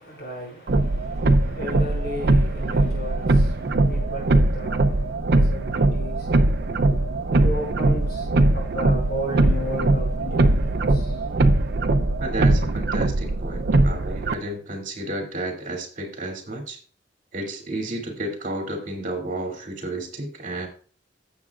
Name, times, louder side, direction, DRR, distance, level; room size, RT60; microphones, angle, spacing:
voice 1, 0.0-6.6 7.3-11.3, equal, 60° left, 5.8 m, -35 dB
sound 1, 0.7-14.3, right 2 dB, 65° right, 0.6 m, -21 dB
voice 2, 12.2-16.8 17.3-20.7, right 1 dB, 50° right, 2.7 m, -32 dB
16.0 x 7.3 x 2.4 m
head